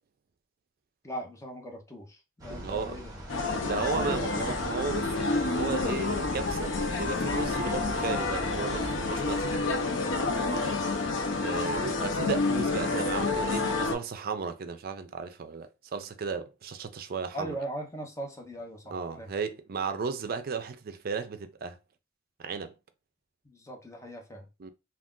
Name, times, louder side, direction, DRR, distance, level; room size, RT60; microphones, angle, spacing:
voice 1, 1.0-3.2 3.7-4.5 7.5-7.7 10.4-10.8 17.3-19.3 23.4-24.5, right 1 dB, 15° left, 0.7 m, -40 dB
sound 1, 2.4-9.6, equal, 20° right, 0.8 m, -41 dB
voice 2, 2.5-3.0 3.6-9.6 11.4-17.6 18.9-21.8 22.4-22.7 24.6-24.7, right 5 dB, 50° right, 0.4 m, -35 dB
sound 2, 3.3-13.9, left 3 dB, 70° left, 0.6 m, -29 dB
2.4 x 2.3 x 3.5 m
head